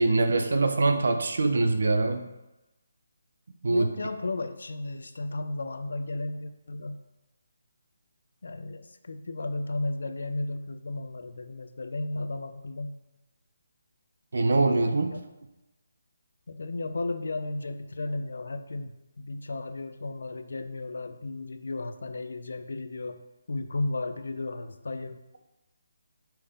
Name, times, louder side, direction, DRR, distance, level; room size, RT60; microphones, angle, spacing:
voice 1, 0.0-2.3 3.6-3.9 14.3-15.1, right 2 dB, 70° right, 7 dB, 0.5 m, -23 dB
voice 2, 3.6-7.0 8.4-12.9 14.8-15.2 16.5-23.2 23.5-25.2, left 2 dB, 70° left, 9 dB, 0.4 m, -34 dB
5.5 x 2.8 x 3.5 m, 0.98 s
figure-of-eight pair, 155°, 0 cm